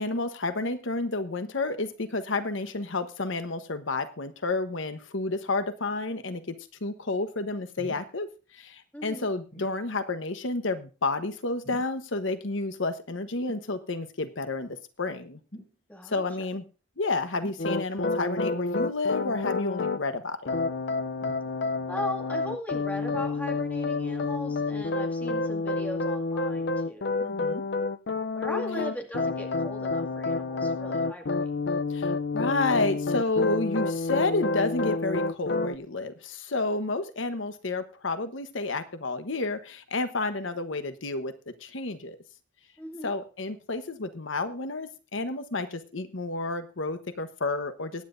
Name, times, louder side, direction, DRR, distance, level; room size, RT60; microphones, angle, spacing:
voice 1, 0.0-6.6 6.8-8.3 8.5-15.4 16.1-16.6 17.0-20.5 27.2-27.6 28.5-28.9 31.9-41.3 41.6-42.2 43.0-48.0, left 3 dB, 85° left, 9 dB, 1.1 m, -30 dB
sound 1, 7.8-8.1 9.5-9.8 11.6-12.0 13.5-13.7 15.5-15.8 17.4-17.7 19.2-19.5 21.2-21.4 23.1-23.7 25.2-25.5 26.3-26.4, equal, 45° left, 6.5 m, -46 dB
voice 2, 8.9-9.3 15.9-16.2 21.9-27.3 28.3-31.4 42.8-43.2, left 1 dB, 10° left, 2 dB, 2.2 m, -38 dB
sound 2, 17.6-20.0 20.5-35.8, left 3 dB, 60° left, 0.6 m, -29 dB
23.0 x 9.9 x 2.6 m, 0.34 s
head